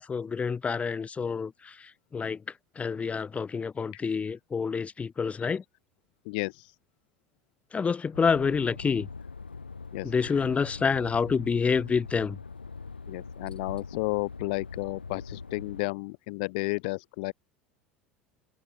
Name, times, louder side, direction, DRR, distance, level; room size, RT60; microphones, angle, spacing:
voice 1, 0.0-2.4 2.8-5.6 7.7-9.1 10.0-12.4, left 5 dB, 25° left, 1.8 m, -28 dB
voice 2, 6.2-6.7 9.9-10.4 13.1-17.3, left 27 dB, 60° left, 0.6 m, -33 dB
sound 1, 8.1-15.8, left 4 dB, 85° left, 2.9 m, -42 dB
figure-of-eight pair, 70°, 5 cm